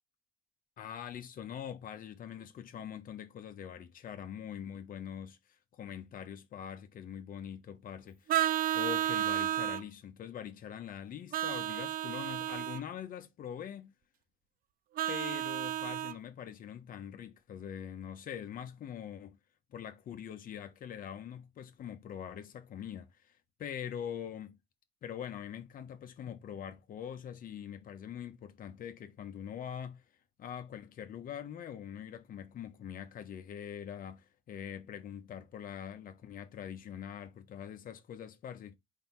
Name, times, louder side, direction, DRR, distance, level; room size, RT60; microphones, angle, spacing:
voice 1, 0.8-5.4 5.7-8.4 8.7-13.9 15.1-19.4 19.7-24.6 25.0-30.0 30.4-38.8, left 9 dB, 55° left, 1.3 m, -43 dB
Vehicle horn car horn honking, 8.3-9.8 11.3-12.8 15.0-16.2, right 12 dB, 60° right, 0.6 m, -32 dB
5.2 x 4.6 x 5.5 m
cardioid pair, 110°, 17 cm